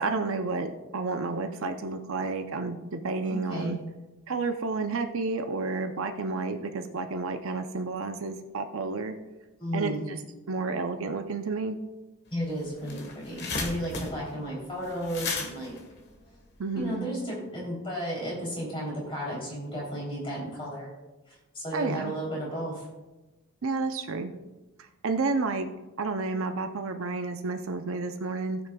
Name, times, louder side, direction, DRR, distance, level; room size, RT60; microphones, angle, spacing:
voice 1, 0.0-3.8 4.3-9.2 9.7-10.2 10.5-11.8 16.6-17.1 21.7-22.1 23.6-24.3 25.0-25.7 26.0-28.6, right 3 dB, 70° right, 6 dB, 0.6 m, -30 dB
voice 2, 3.2-3.8 9.6-10.0 12.3-15.7 16.7-20.9 21.3-22.8, equal, 25° left, -5 dB, 3.1 m, -33 dB
sound 1, 12.3-12.4 12.7-16.9, left 4 dB, 55° left, 1.3 m, -36 dB
18.0 x 6.1 x 2.3 m, 1.1 s
head